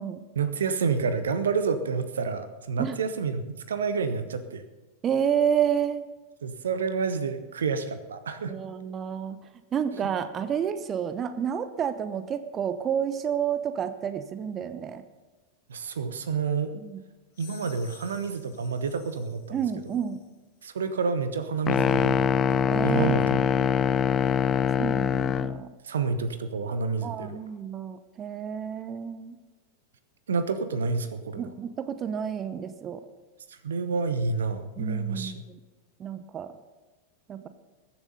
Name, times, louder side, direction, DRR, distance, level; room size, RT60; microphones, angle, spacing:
voice 1, 0.4-4.6 6.4-8.5 15.7-16.7 17.4-19.6 20.6-23.7 25.8-27.4 30.3-31.5 33.5-35.3, right 5 dB, 65° right, 12 dB, 1.0 m, -29 dB
voice 2, 5.0-6.1 8.5-9.4 9.7-15.0 16.7-17.0 19.5-20.2 22.7-23.7 24.8-25.7 27.0-29.4 31.4-33.0 34.8-35.6 36.0-36.5 37.3-37.5, right 8 dB, 25° right, 11 dB, 0.8 m, -30 dB
sound 1, 17.3-20.3, left 9 dB, 45° left, 3.5 m, -53 dB
sound 2, 21.7-25.6, left 7 dB, 25° left, 0.4 m, -23 dB
21.5 x 7.4 x 5.5 m, 1.2 s
figure-of-eight pair, 90°, 0 cm